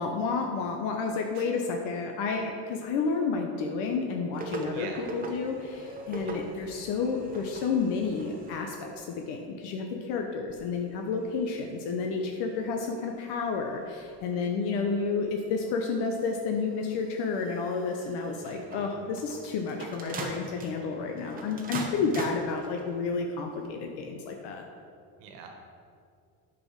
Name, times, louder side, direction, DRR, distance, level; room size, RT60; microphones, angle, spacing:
voice 1, 0.0-24.6, left 4 dB, 70° left, 3 dB, 1.0 m, -31 dB
sound 1, 3.0-3.9 5.2-6.6 8.6-8.9, left 2 dB, 30° left, 2.0 m, -47 dB
sound 2, 4.3-9.5 10.5-23.2 23.8-23.9, right 3 dB, 20° right, 0.8 m, -43 dB
voice 2, 4.7-5.1 6.2-6.4 18.4-18.9 25.2-25.5, right 6 dB, 75° right, 3 dB, 1.5 m, -44 dB
8.9 x 5.2 x 6.0 m, 2.2 s
cardioid pair, 160°, 41 cm